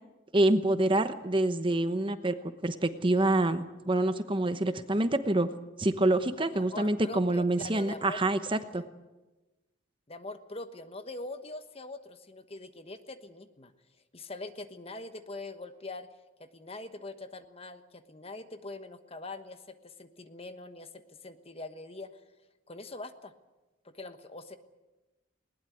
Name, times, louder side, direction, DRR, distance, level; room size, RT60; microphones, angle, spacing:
voice 1, 0.3-2.3 2.6-5.5 5.8-8.6, right 1 dB, 25° right, 10 dB, 1.0 m, -26 dB
voice 2, 6.4-8.9 10.1-13.7 14.1-16.1 16.4-22.1 22.7-23.3 23.8-24.6, left 2 dB, 30° left, 9 dB, 1.2 m, -43 dB
20.5 x 19.5 x 9.3 m, 1.1 s
head